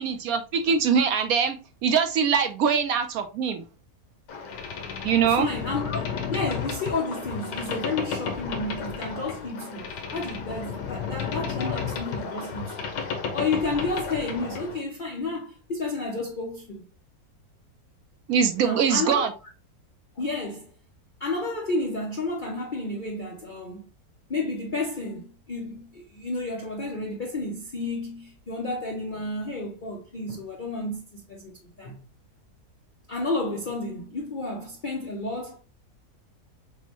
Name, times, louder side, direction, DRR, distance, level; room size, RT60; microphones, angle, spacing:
voice 1, 0.0-1.6 1.8-3.6 5.0-5.5 18.3-19.3, right 6 dB, 70° right, 1.0 m, -23 dB
Boat Water vehicle, 4.3-14.8, left 6 dB, 85° left, 1.5 m, -33 dB
voice 2, 5.3-6.0 6.3-12.9 13.3-16.8 18.6-19.3 20.2-20.7 21.2-23.9 24.3-32.0 33.1-35.6, left 2 dB, 60° left, 0.5 m, -31 dB
6.0 x 2.1 x 2.9 m
omnidirectional pair, 1.7 m